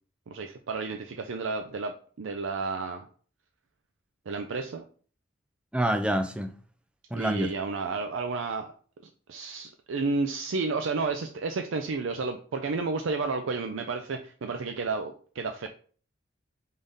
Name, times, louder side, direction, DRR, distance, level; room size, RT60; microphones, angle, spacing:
voice 1, 0.3-3.1 4.3-4.8 7.2-8.7 9.3-15.7, right 4 dB, 75° right, 0.4 m, -31 dB
voice 2, 5.7-6.5 7.1-7.5, right 1 dB, 5° right, 0.4 m, -27 dB
3.9 x 3.7 x 3.6 m
head